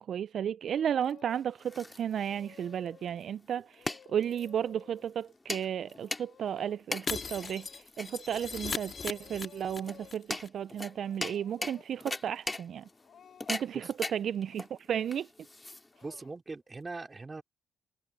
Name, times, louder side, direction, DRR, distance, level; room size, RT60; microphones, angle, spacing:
voice 1, 0.0-12.9 13.5-15.3, right 9 dB, 60° right, 0.3 m, -34 dB
Speech / Crying sobbing, 0.7-1.7 2.0-8.6 8.9-10.3 10.6-16.8, left 8 dB, 60° left, 6.4 m, -58 dB
sound 1, 1.3-16.2, left 2 dB, 15° left, 2.9 m, -41 dB
Shatter, 7.1-10.1 10.4-10.5 10.8-10.9, left 5 dB, 40° left, 1.8 m, -38 dB
voice 2, 16.0-17.4, right 3 dB, 25° right, 4.2 m, -41 dB
cardioid pair, 90°, 0 cm